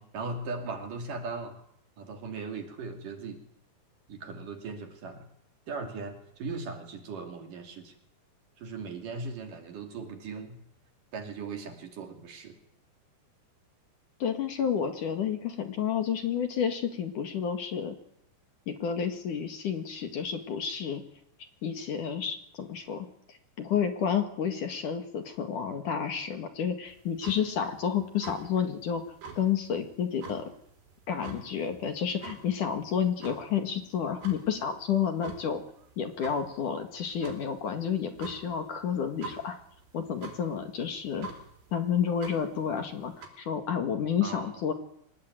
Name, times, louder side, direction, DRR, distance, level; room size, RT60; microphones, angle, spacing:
voice 1, 0.0-1.6 2.0-3.4 4.1-5.3 5.7-7.9 8.6-10.6 11.1-12.6 44.2-44.5, right 4 dB, 55° right, 5 dB, 4.0 m, -38 dB
voice 2, 14.2-18.0 18.7-21.0 21.6-29.0 29.3-30.5 31.1-35.6 36.0-39.6 39.9-41.3 41.7-44.7, left 8 dB, 55° left, 7 dB, 3.2 m, -30 dB
sound 1, 26.9-43.3, right 4 dB, 80° right, 6.4 m, -47 dB
25.0 x 19.5 x 9.3 m, 0.71 s
omnidirectional pair, 4.8 m